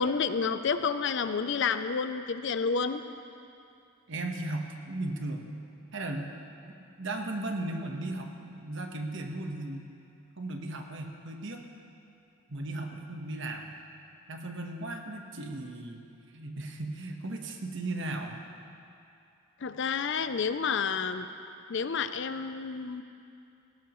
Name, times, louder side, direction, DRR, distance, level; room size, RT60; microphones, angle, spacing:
voice 1, 0.0-3.0 19.6-21.3 21.7-23.0, left 5 dB, 55° left, 10 dB, 0.5 m, -29 dB
voice 2, 4.1-5.6 5.9-6.3 6.6-9.9 10.4-11.6 12.5-13.7 14.3-16.0 16.3-18.4, right 2 dB, 55° right, 3 dB, 1.2 m, -36 dB
18.0 x 16.0 x 3.1 m, 2.6 s
head